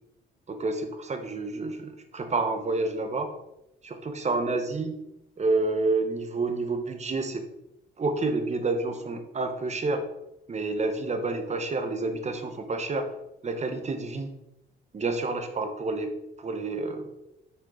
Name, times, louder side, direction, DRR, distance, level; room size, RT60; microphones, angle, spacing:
voice 1, 0.5-3.3 3.8-5.0 5.4-7.4 8.0-10.0 10.5-13.1 13.4-14.3 14.9-17.2, right 3 dB, 35° right, 7 dB, 1.2 m, -29 dB
9.4 x 6.2 x 3.9 m, 0.87 s
cardioid pair, 90°, 20 cm